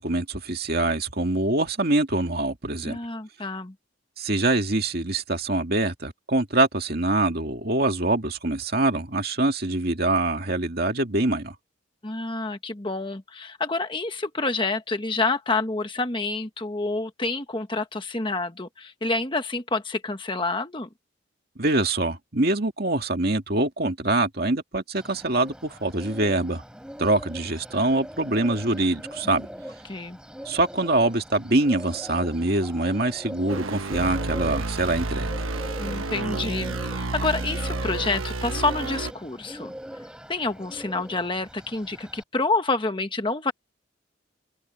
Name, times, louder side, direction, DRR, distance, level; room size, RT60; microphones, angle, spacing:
voice 1, 0.0-3.0 4.2-11.5 21.6-26.6 27.0-29.5 30.5-35.3, right 2 dB, 50° right, 2.3 m, -24 dB
voice 2, 2.8-3.7 12.0-20.9 29.8-30.2 35.8-39.7 40.3-43.5, left 3 dB, 25° left, 1.2 m, -28 dB
Bird, 24.9-42.2, equal, 5° right, 3.7 m, -41 dB
sound 1, 33.5-39.1, right 2 dB, 90° right, 1.3 m, -30 dB
open air
head